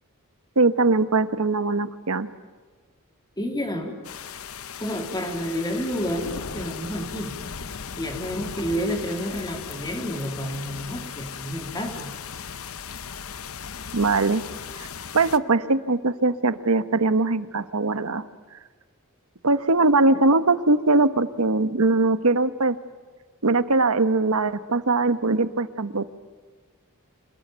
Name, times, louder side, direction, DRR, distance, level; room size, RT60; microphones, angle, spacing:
voice 1, 0.6-2.3 13.9-14.4 14.8-14.9 15.1-18.2 19.4-22.8 23.4-26.1, right 3 dB, 75° right, 12 dB, 1.2 m, -21 dB
voice 2, 3.4-4.0 4.8-7.3 8.0-12.1, equal, 20° left, 4 dB, 3.2 m, -30 dB
sound 1, 4.0-15.4, left 6 dB, 70° left, 0.9 m, -37 dB
26.5 x 20.0 x 9.1 m, 1.5 s
head